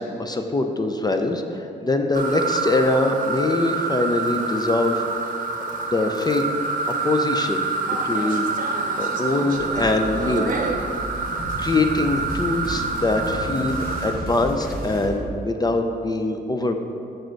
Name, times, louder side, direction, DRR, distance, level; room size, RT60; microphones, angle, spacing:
voice 1, 0.0-5.0 5.8-6.4 7.0-10.5 11.6-16.8, left 2 dB, 20° left, 5 dB, 0.5 m, -23 dB
sound 1, 2.1-14.1, right 4 dB, 50° right, 0.8 m, -27 dB
sound 2, 9.5-15.1, equal, 55° left, 1.5 m, -33 dB
6.2 x 5.1 x 4.5 m, 2.6 s
cardioid pair, 90°, 18 cm